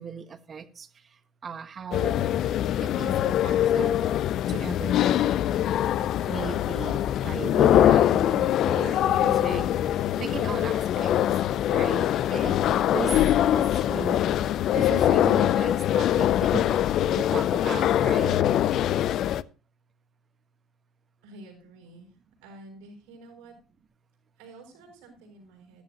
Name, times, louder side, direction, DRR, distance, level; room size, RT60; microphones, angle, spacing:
voice 1, 0.0-2.3 2.8-4.1 4.5-5.3 6.3-11.1 11.7-12.6 12.9-13.2 13.5-14.2 14.7-18.4, right 6 dB, 40° right, 11 dB, 1.4 m, -36 dB
sound 1, 1.9-19.4, left 11 dB, 60° left, 0.5 m, -23 dB
voice 2, 21.2-23.5 24.4-25.8, right 2 dB, 85° right, 2 dB, 6.1 m, -49 dB
13.5 x 11.5 x 2.9 m, 0.34 s
hypercardioid pair, 70°, 0 cm